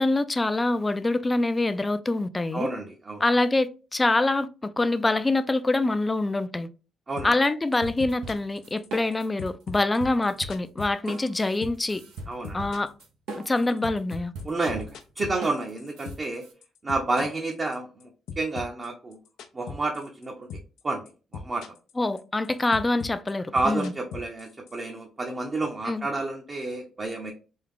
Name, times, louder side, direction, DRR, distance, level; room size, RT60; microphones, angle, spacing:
voice 1, 0.0-2.7 3.2-6.7 7.2-12.0 12.5-12.9 13.3-14.3 22.0-23.9 25.9-26.1, left 2 dB, 20° left, 0.4 m, -25 dB
voice 2, 2.5-3.2 7.1-7.3 12.3-12.6 14.4-14.9 15.2-16.4 16.8-18.1 18.4-19.2 19.5-20.5 20.8-21.0 21.3-21.7 23.5-27.3, right 2 dB, 30° right, 0.7 m, -30 dB
sound 1, 7.2-7.5 7.7-9.1 9.4-11.4 11.6-11.9 12.2-16.4 16.6-18.0 18.3-20.2 20.5-20.8 21.1-21.9 22.2-24.8, left 5 dB, 80° left, 0.5 m, -39 dB
sound 2, 7.8-9.5 9.7-16.5, right 2 dB, 90° right, 0.8 m, -40 dB
3.5 x 2.3 x 3.6 m
cardioid pair, 90°, 0 cm